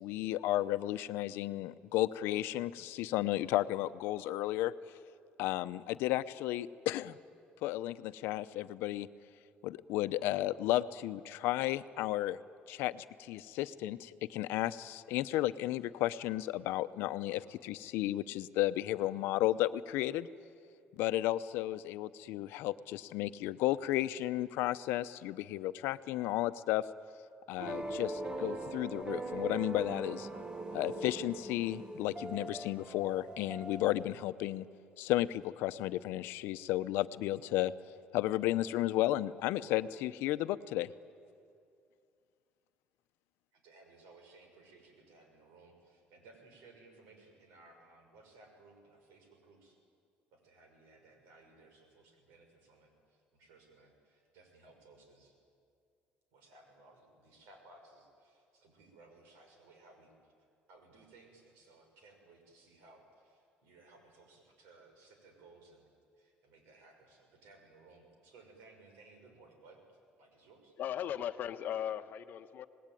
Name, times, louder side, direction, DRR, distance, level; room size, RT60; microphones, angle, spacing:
voice 1, 0.0-4.7 5.4-7.2 7.6-9.1 9.6-12.4 12.7-20.3 21.0-26.9 27.5-30.3 30.7-34.6 35.0-37.7 38.1-40.9, left 15 dB, 85° left, 13 dB, 0.8 m, -33 dB
sound 1, 27.6-34.2, right 2 dB, 20° right, 1.3 m, -41 dB
voice 2, 43.5-49.8 50.3-55.3 56.3-60.3 60.7-65.8 66.2-70.7, right 3 dB, 90° right, 4 dB, 6.1 m, -60 dB
voice 3, 70.8-72.7, left 10 dB, 55° left, 10 dB, 1.1 m, -37 dB
26.0 x 19.5 x 9.2 m, 2.4 s
cardioid pair, 130°, 4 cm